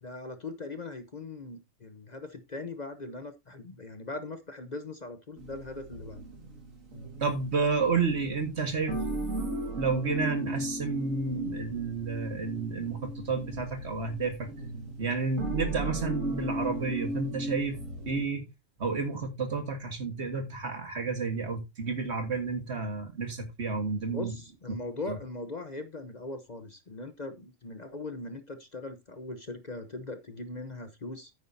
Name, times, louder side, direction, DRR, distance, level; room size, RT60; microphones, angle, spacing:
voice 1, 0.0-6.2 6.9-7.1 24.1-31.3, left 2 dB, 35° left, 1.0 m, -40 dB
sound 1, 5.4-18.2, right 1 dB, 90° right, 2.5 m, -37 dB
voice 2, 7.2-9.0 9.8-14.5 15.0-17.8 18.1-18.5 18.8-24.3 24.7-24.8 25.1-25.2, right 4 dB, 60° right, 2.0 m, -31 dB
9.4 x 9.3 x 2.7 m
omnidirectional pair, 1.3 m